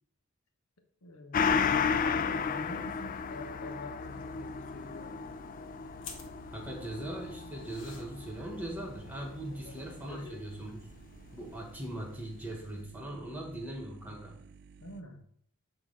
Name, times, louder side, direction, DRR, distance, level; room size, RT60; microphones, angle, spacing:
voice 1, 1.0-1.6 2.0-5.2 9.5-10.4 14.8-15.2, left 2 dB, 85° left, 4 dB, 1.1 m, -47 dB
Gong, 1.3-10.3 10.6-10.7, left 6 dB, 40° left, 0.3 m, -34 dB
sound 1, 4.0-15.0, right 5 dB, 50° right, 0.4 m, -55 dB
sound 2, 6.0-11.7, left 5 dB, 60° left, 1.1 m, -54 dB
voice 2, 6.5-10.9 11.3-14.4, right 1 dB, 10° right, 1 dB, 1.3 m, -40 dB
8.5 x 2.9 x 5.6 m, 0.63 s
head